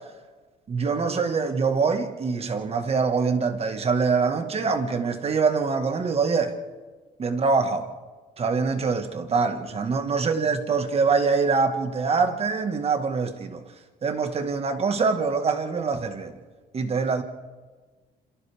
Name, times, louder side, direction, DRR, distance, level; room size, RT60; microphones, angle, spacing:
voice 1, 0.7-6.5 7.2-7.9 8.4-13.6 14.0-16.4 16.7-17.2, right 4 dB, 35° right, 1.7 m, -24 dB
27.5 x 27.0 x 3.6 m
cardioid pair, 110°, 17 cm